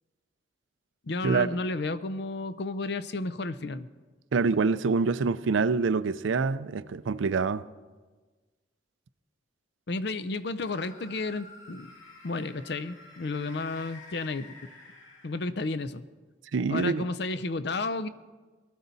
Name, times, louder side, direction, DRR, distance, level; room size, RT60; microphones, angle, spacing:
voice 1, 1.0-3.9 9.9-11.9 12.2-14.5 15.2-16.0 16.7-18.1, left 3 dB, 60° left, 0.6 m, -32 dB
voice 2, 4.3-7.7 16.5-17.0, right 4 dB, 85° right, 0.5 m, -26 dB
sound 1, 10.6-15.8, left 2 dB, 75° left, 2.3 m, -50 dB
19.5 x 13.0 x 4.1 m
head